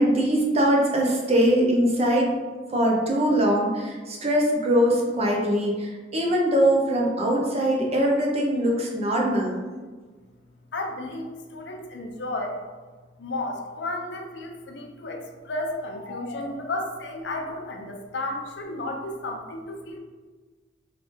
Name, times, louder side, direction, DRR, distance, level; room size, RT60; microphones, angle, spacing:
voice 1, 0.0-2.3 2.7-9.5, equal, 35° right, -1 dB, 0.8 m, -22 dB
voice 2, 10.7-12.6 13.2-20.0, left 2 dB, 70° left, 3 dB, 0.6 m, -33 dB
3.8 x 3.4 x 3.5 m, 1.4 s
head